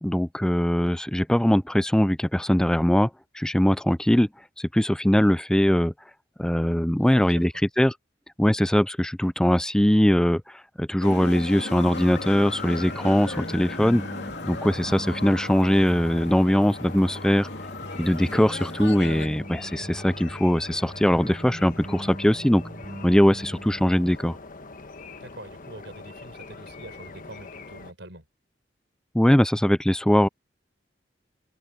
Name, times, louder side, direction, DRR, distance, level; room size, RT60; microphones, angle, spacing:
voice 1, 0.0-4.3 4.6-5.9 6.4-7.5 7.8-7.9 8.4-14.0 14.5-17.5 18.0-22.6 23.0-24.4 29.1-30.3, equal, 5° left, 0.3 m, -21 dB
voice 2, 7.0-7.6 25.2-28.3, right 2 dB, 75° right, 5.4 m, -45 dB
sound 1, 11.0-19.3, left 3 dB, 65° left, 3.1 m, -37 dB
sound 2, 12.0-24.0, right 1 dB, 25° right, 0.8 m, -41 dB
sound 3, 12.1-27.9, left 3 dB, 50° left, 1.3 m, -43 dB
head